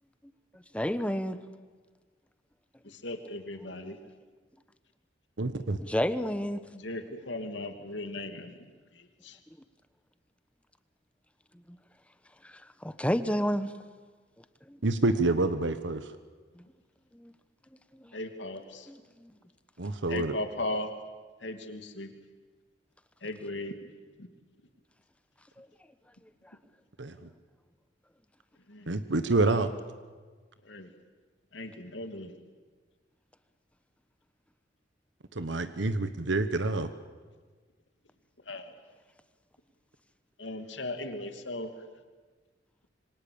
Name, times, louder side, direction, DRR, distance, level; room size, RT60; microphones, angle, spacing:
voice 1, 0.7-1.4 5.8-6.6 12.4-12.5 12.8-13.7 14.7-14.8 16.6-16.7 17.1-17.3 18.0-18.1 18.9-19.3 25.6-25.7, equal, 5° left, 11 dB, 1.1 m, -30 dB
voice 2, 2.8-4.0 6.7-8.6 8.9-9.4 18.1-18.9 20.1-20.9 21.4-22.1 23.2-23.8 24.2-24.3 28.7-28.9 30.6-30.9 31.5-32.3 38.5-38.7 40.4-41.7, left 2 dB, 85° left, 6 dB, 2.8 m, -37 dB
voice 3, 5.4-5.8 14.8-16.1 19.8-20.3 27.0-27.3 28.9-29.7 35.3-36.9, right 2 dB, 85° right, 10 dB, 1.2 m, -27 dB
26.5 x 24.5 x 8.8 m, 1.4 s
head